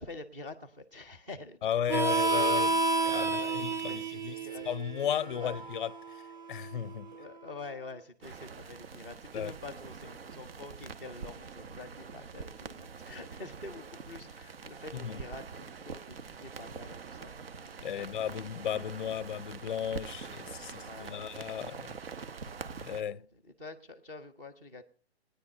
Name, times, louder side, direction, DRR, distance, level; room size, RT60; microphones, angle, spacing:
voice 1, 0.0-1.6 1.9-2.1 2.9-4.7 5.3-5.6 7.1-18.1 20.6-21.8 22.6-24.8, left 3 dB, 10° right, 0.6 m, -47 dB
voice 2, 1.6-4.3 4.7-6.2 6.5-7.1 9.3-9.5 14.9-15.2 17.8-22.0 22.8-23.2, left 9 dB, 50° left, 0.5 m, -35 dB
Harmonica, 1.9-7.2, right 3 dB, 40° right, 1.5 m, -31 dB
sound 1, 8.2-23.0, right 5 dB, 60° right, 1.1 m, -45 dB
17.0 x 10.0 x 5.4 m
hypercardioid pair, 155°, 33 cm